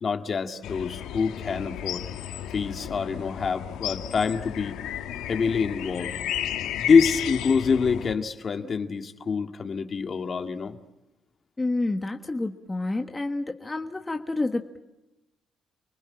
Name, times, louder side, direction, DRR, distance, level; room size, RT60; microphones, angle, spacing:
voice 1, 0.0-2.0 2.5-4.8 5.3-6.1 6.8-10.8, left 5 dB, 45° left, 7 dB, 2.0 m, -25 dB
sound 1, 0.6-8.1, left 11 dB, 90° left, 1.5 m, -33 dB
voice 2, 11.6-14.8, left 2 dB, 20° left, 5 dB, 1.4 m, -29 dB
29.5 x 20.0 x 8.7 m, 0.95 s
cardioid pair, 90°, 0 cm